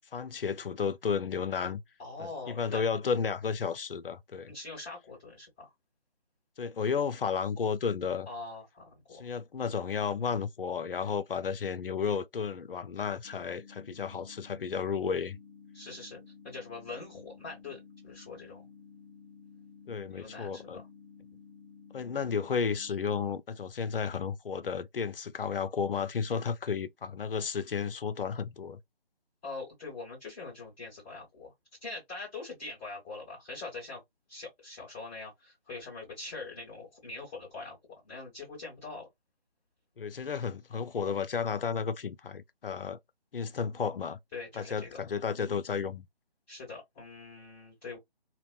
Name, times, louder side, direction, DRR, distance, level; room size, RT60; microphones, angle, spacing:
voice 1, 0.1-1.8 2.2-4.5 6.6-8.3 9.1-15.4 19.9-20.8 21.9-28.8 40.0-43.0 43.3-44.2 44.6-46.1, left 6 dB, 65° left, 0.4 m, -33 dB
voice 2, 2.0-2.8 4.4-5.7 8.2-9.3 15.7-16.2 16.4-18.7 20.1-20.9 29.4-31.5 31.8-34.0 34.3-39.1 44.3-45.0 46.5-48.0, left 3 dB, 10° left, 1.5 m, -43 dB
sound 1, 13.2-23.2, left 5 dB, 15° right, 0.5 m, -53 dB
2.9 x 2.1 x 2.3 m
figure-of-eight pair, 155°, 31 cm